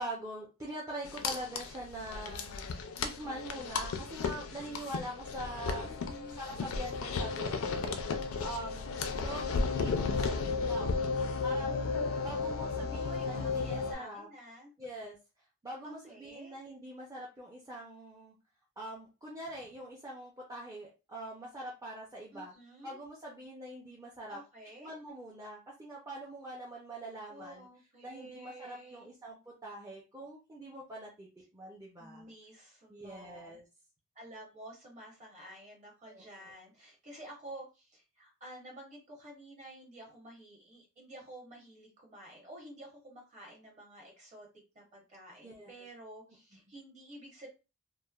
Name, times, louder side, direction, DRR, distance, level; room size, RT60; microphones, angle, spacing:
voice 1, 0.0-2.5 3.0-5.9 6.4-8.0 8.4-11.2 11.4-11.8 12.2-14.3 14.8-15.2 15.6-18.4 18.8-22.5 22.8-24.4 24.8-27.7 28.0-32.3 32.9-33.6 36.1-36.5 45.4-45.7, right 1 dB, 15° right, -4 dB, 0.4 m, -44 dB
sound 1, 1.0-13.9, left 4 dB, 70° left, 0.4 m, -34 dB
voice 2, 5.8-6.4 12.9-14.7 15.8-16.6 22.3-23.0 24.3-24.9 27.3-29.2 32.0-33.6 34.1-44.5 44.7-47.5, right 1 dB, 30° right, -1 dB, 0.9 m, -51 dB
3.0 x 2.0 x 2.3 m, 0.30 s
head